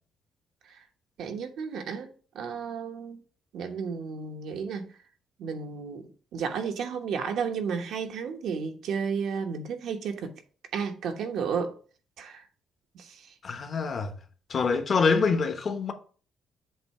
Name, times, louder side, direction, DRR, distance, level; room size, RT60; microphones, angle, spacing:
voice 1, 1.2-2.1 2.3-3.2 3.5-4.9 5.4-10.3 10.7-11.8 12.2-12.4 12.9-13.3, right 6 dB, 75° right, 1.1 m, -32 dB
voice 2, 13.4-14.1 14.5-15.9, left 5 dB, 40° left, 0.9 m, -25 dB
7.7 x 2.8 x 5.5 m
cardioid pair, 130°, 0 cm